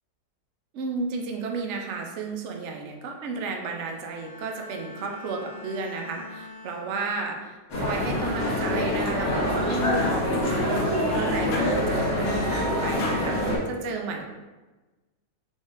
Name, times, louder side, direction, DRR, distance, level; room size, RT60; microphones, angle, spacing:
voice 1, 0.7-14.2, right 3 dB, 65° right, 2 dB, 0.7 m, -33 dB
Bowed string instrument, 3.9-7.5 7.9-8.3, left 3 dB, 20° left, 0.9 m, -44 dB
sound 1, 7.7-13.6, left 1 dB, 55° left, 1.3 m, -25 dB
sound 2, 8.5-8.7 9.1-9.2 9.7-9.9 10.3-11.2 11.5-12.7 13.0-13.2, left 2 dB, 75° left, 1.2 m, -37 dB
3.7 x 3.5 x 2.5 m, 1.2 s
omnidirectional pair, 1.7 m